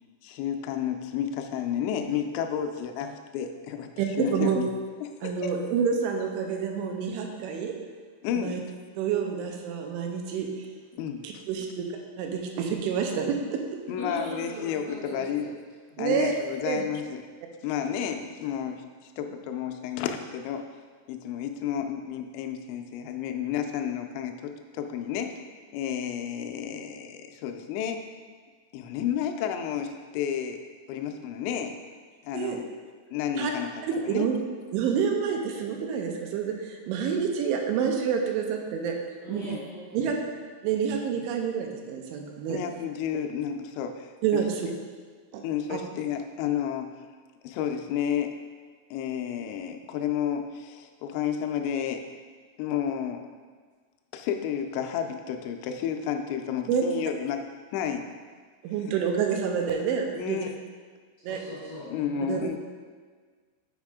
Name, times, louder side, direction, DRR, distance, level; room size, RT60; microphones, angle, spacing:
voice 1, 0.2-4.7 5.0-5.5 8.2-8.6 11.0-11.4 13.9-15.5 16.0-17.2 17.6-20.6 21.1-25.3 25.7-28.1 28.7-30.6 30.9-31.7 32.2-32.7 33.1-34.3 39.4-39.6 42.5-44.1 45.4-46.9 47.4-48.4 48.9-52.0 52.6-53.2 54.1-57.4 57.7-58.0 58.8-58.9 60.1-60.6 61.8-62.6, left 9 dB, 85° left, 5 dB, 2.6 m, -31 dB
voice 2, 4.0-4.6 5.2-7.7 8.4-8.6 9.0-10.5 11.2-11.9 12.2-13.6 16.0-16.3 16.7-16.8 32.3-32.6 33.4-33.5 33.8-34.4 34.7-39.0 39.3-39.4 39.9-40.1 40.6-42.6 44.2-44.6 45.3-45.4 45.7-45.8 56.7-56.8 58.6-60.4 61.2-61.4 62.3-62.6, right 7 dB, 85° right, 2 dB, 3.1 m, -28 dB
voice 3, 14.0-15.5 15.9-16.0 39.2-40.1 61.3-62.3, left 1 dB, 60° left, -11 dB, 1.1 m, -39 dB
8.1 x 5.1 x 3.6 m, 1.6 s
omnidirectional pair, 5.5 m